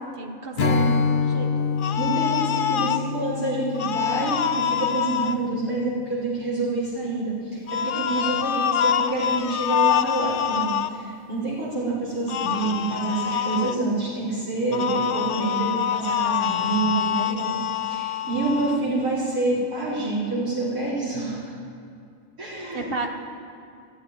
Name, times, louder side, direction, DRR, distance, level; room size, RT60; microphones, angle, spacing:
voice 1, 0.0-1.7 7.8-8.6 16.9-17.7 22.7-23.1, right 3 dB, 45° right, 5 dB, 1.3 m, -35 dB
Strum, 0.6-6.0, left 5 dB, 50° left, 1.0 m, -27 dB
voice 2, 0.6-0.9 2.0-21.6 22.4-22.9, right 2 dB, 75° right, -10 dB, 4.6 m, -27 dB
sound 1, 1.8-3.0 3.7-5.3 7.7-10.9 12.3-13.8 14.7-18.8, left 9 dB, 75° left, 0.4 m, -25 dB
13.5 x 8.2 x 9.9 m, 2.4 s
omnidirectional pair, 1.5 m